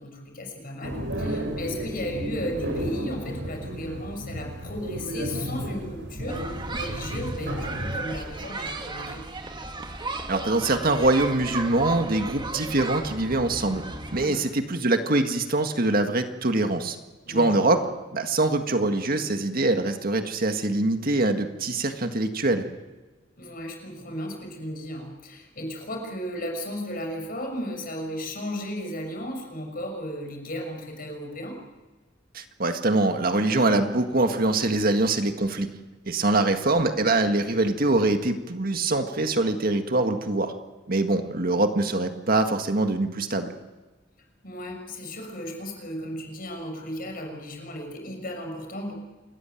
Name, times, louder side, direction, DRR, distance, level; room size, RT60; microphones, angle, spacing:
voice 1, 0.0-9.2 14.2-14.4 17.3-17.6 23.4-31.6 44.4-48.9, equal, 50° left, 2 dB, 6.1 m, -35 dB
sound 1, 0.8-8.0, equal, 75° right, 5.1 m, -33 dB
sound 2, 6.3-14.3, right 2 dB, 25° right, 1.8 m, -35 dB
voice 2, 10.3-13.8 14.1-17.0 17.3-17.8 18.1-22.6 32.3-35.7 36.1-40.5 40.9-43.5, right 2 dB, 50° right, 6 dB, 1.8 m, -24 dB
28.0 x 14.5 x 9.2 m, 1.3 s
head